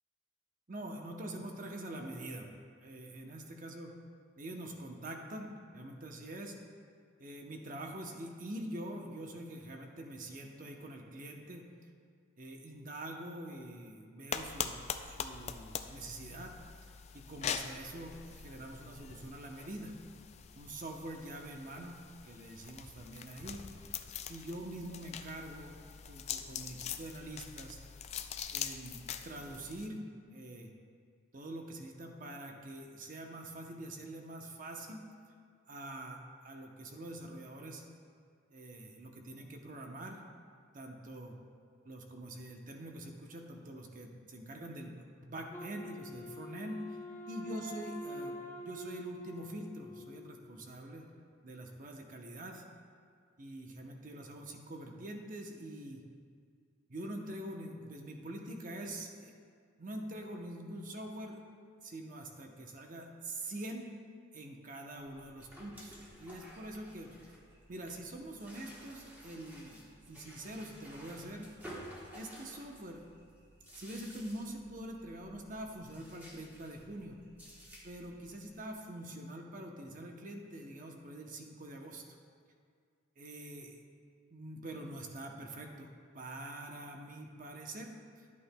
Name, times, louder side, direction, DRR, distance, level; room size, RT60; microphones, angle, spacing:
voice 1, 0.7-2.5 2.8-3.9 4.4-6.5 7.2-11.7 12.4-14.8 15.0-16.5 17.1-20.0 20.6-22.0 22.2-23.6 24.3-25.8 26.1-27.8 28.5-30.7 31.3-35.0 35.7-37.8 38.5-40.2 40.7-41.3 41.8-46.8 47.3-51.1 51.4-52.6 53.4-56.0 56.9-59.3 59.8-61.4 61.8-63.9 64.3-67.1 67.7-71.5 72.1-73.0 73.7-77.2 77.8-82.0 83.2-83.8 84.3-87.9, right 1 dB, 45° right, 2 dB, 0.7 m, -45 dB
sound 1, 14.3-29.9, left 7 dB, 35° left, 0.3 m, -43 dB
Wind instrument woodwind instrument, 45.5-50.5, equal, 10° left, 0.7 m, -46 dB
sound 2, 65.0-78.7, equal, 10° right, 1.3 m, -54 dB
11.5 x 8.4 x 2.2 m, 2.1 s
head